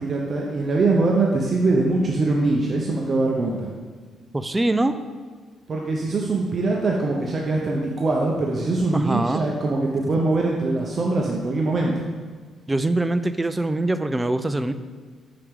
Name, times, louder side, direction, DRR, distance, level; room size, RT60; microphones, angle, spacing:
voice 1, 0.0-3.7 5.7-12.1, right 2 dB, 45° right, -2 dB, 0.7 m, -22 dB
voice 2, 4.3-4.9 8.9-9.4 12.7-14.7, right 2 dB, 15° right, 11 dB, 0.4 m, -23 dB
5.9 x 4.9 x 3.6 m, 1.5 s
cardioid pair, 90°, 0 cm